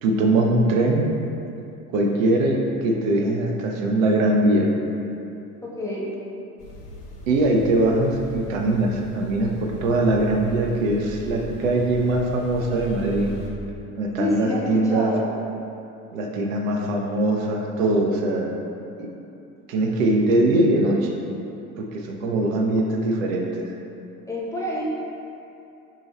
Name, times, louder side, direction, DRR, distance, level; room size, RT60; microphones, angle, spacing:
voice 1, 0.0-1.1 1.9-4.7 7.3-13.3 14.0-15.1 16.1-18.5 19.0-19.1 19.7-21.1 21.8-23.7, right 2 dB, 60° right, 1 dB, 0.7 m, -21 dB
voice 2, 5.6-6.1 14.2-15.3 24.3-24.9, left 1 dB, 5° left, -6 dB, 0.5 m, -27 dB
sound 1, 6.6-13.5, equal, 90° left, 0.7 m, -38 dB
6.2 x 2.9 x 3.0 m, 2.7 s
figure-of-eight pair, 65°, 45 cm